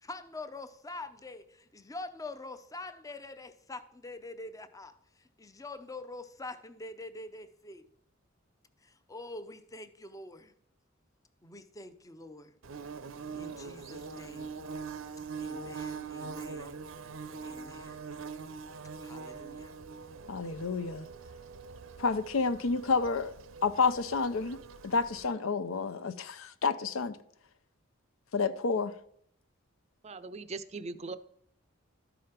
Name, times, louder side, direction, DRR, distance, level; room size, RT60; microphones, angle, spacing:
voice 1, 0.0-5.0 5.4-7.9 8.8-10.5 11.4-12.5 13.3-14.6 15.4-16.8 17.4-18.0 19.0-19.8, left 2 dB, 15° left, 0.6 m, -45 dB
Bird / Buzz, 12.6-25.3, right 5 dB, 75° right, 0.7 m, -43 dB
voice 2, 20.3-21.0 22.0-23.3 23.6-24.6 24.8-27.2 28.3-28.9, left 4 dB, 75° left, 0.6 m, -29 dB
voice 3, 30.0-31.2, right 3 dB, 30° right, 0.5 m, -40 dB
12.5 x 5.0 x 5.9 m
head